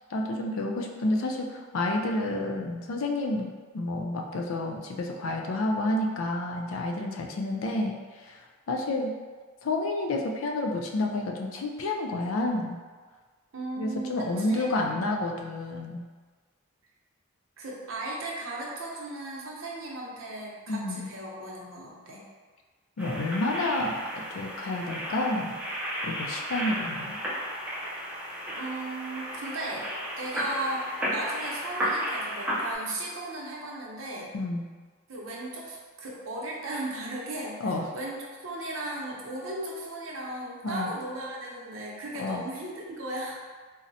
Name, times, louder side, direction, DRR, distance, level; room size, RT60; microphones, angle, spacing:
voice 1, 0.1-9.1 9.6-12.8 13.8-16.1 20.7-21.1 23.0-24.0 24.3-25.5 26.0-27.2 34.3-34.6 37.6-37.9 40.6-40.9 42.2-42.4, left 2 dB, 80° left, 1 dB, 0.4 m, -30 dB
voice 2, 13.5-15.4 17.6-22.2 28.6-29.9 30.2-30.9 31.1-34.3 35.1-43.4, right 2 dB, 75° right, -4 dB, 0.7 m, -36 dB
sound 1, 23.0-32.7, equal, 5° right, 0.5 m, -33 dB
3.8 x 2.1 x 2.7 m, 1.4 s
head